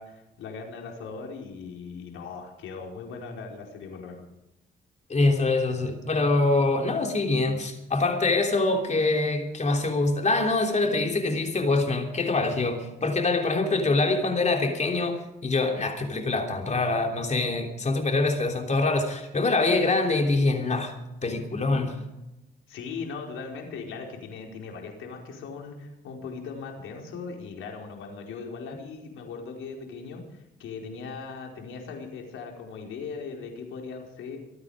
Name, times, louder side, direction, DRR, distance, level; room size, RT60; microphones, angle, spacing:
voice 1, 0.0-4.2 22.7-34.4, left 5 dB, 85° left, 1 dB, 4.6 m, -39 dB
voice 2, 5.1-20.9 21.2-22.0, left 3 dB, 35° left, 3 dB, 3.2 m, -24 dB
25.5 x 9.5 x 5.1 m, 0.93 s
cardioid pair, 90°, 20 cm